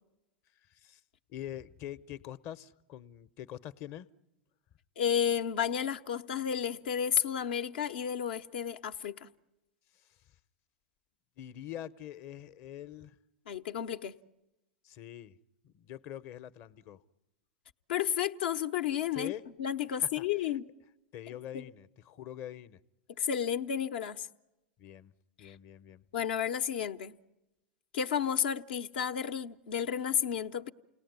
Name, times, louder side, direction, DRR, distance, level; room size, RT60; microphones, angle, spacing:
voice 1, 0.7-1.0 1.3-4.1 9.9-10.2 11.4-13.1 14.8-15.4 15.6-17.0 19.1-19.4 20.0-20.3 21.1-22.8 24.8-25.1 25.4-26.0, left 11 dB, 45° left, 1.0 m, -44 dB
voice 2, 5.0-9.3 13.5-14.2 17.9-19.3 19.6-20.6 21.5-21.7 23.2-24.3 25.4-25.5 26.1-27.2 27.9-30.7, left 8 dB, 70° left, 1.0 m, -32 dB
28.5 x 19.0 x 9.5 m
hypercardioid pair, 105°, 6 cm